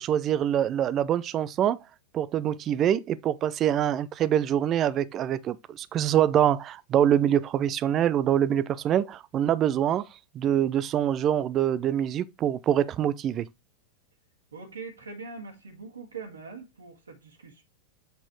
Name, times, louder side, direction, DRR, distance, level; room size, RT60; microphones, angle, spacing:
voice 1, 0.0-1.8 2.1-10.0 10.3-13.5, right 10 dB, 30° right, 0.5 m, -25 dB
voice 2, 14.5-17.6, right 4 dB, 75° right, 1.9 m, -42 dB
7.9 x 4.1 x 3.1 m
figure-of-eight pair, 90°, 0 cm